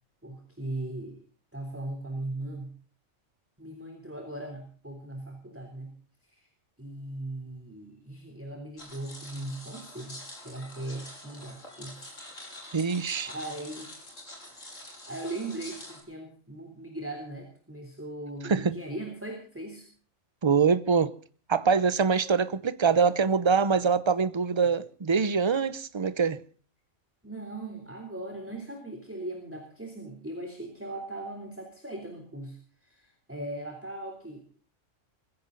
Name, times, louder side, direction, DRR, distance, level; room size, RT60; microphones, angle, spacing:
voice 1, 0.2-1.2 1.5-2.7 3.6-5.9 6.3-6.5 6.8-10.2 10.4-12.1 13.3-14.1 14.5-14.8 15.1-19.9 27.2-34.4, right 2 dB, 10° right, 3.4 m, -39 dB
sound 1, 8.8-16.0, left 1 dB, 85° left, 5.8 m, -46 dB
voice 2, 12.7-13.3 18.4-18.8 20.4-21.1 21.5-26.4, right 5 dB, 25° right, 0.7 m, -24 dB
21.0 x 16.0 x 4.0 m
omnidirectional pair, 1.3 m